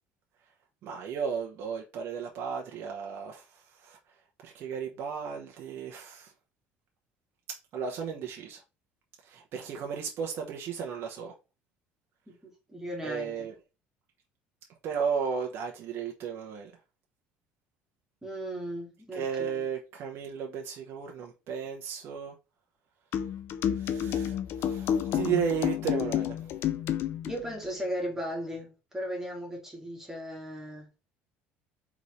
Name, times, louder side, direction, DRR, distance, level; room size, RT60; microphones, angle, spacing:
voice 1, 0.8-4.0 4.4-6.3 7.7-8.6 9.2-11.3 13.0-13.5 14.8-16.7 19.1-22.3 23.7-26.4, right 7 dB, 55° right, 0.9 m, -34 dB
voice 2, 12.3-13.5 18.2-19.7 27.2-30.9, equal, 10° right, 2.0 m, -37 dB
sound 1, 23.1-27.4, left 9 dB, 55° left, 0.5 m, -30 dB
4.1 x 3.6 x 3.1 m
cardioid pair, 125°, 5 cm